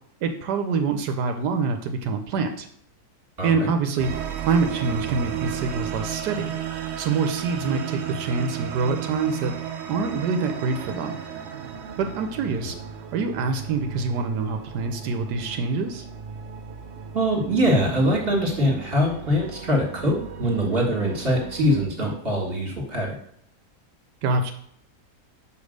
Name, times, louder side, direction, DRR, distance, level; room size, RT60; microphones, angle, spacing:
voice 1, 0.2-2.7 3.4-6.5 7.0-9.5 9.9-11.2 12.0-12.8 13.1-16.0 24.2-24.5, right 4 dB, 80° right, 6 dB, 1.3 m, -25 dB
voice 2, 3.4-3.7 12.6-12.7 17.1-23.2, equal, 35° right, -1 dB, 1.9 m, -23 dB
sound 1, 4.0-21.8, right 8 dB, 60° right, 0.7 m, -34 dB
5.2 x 5.1 x 6.5 m, 0.68 s
omnidirectional pair, 1.8 m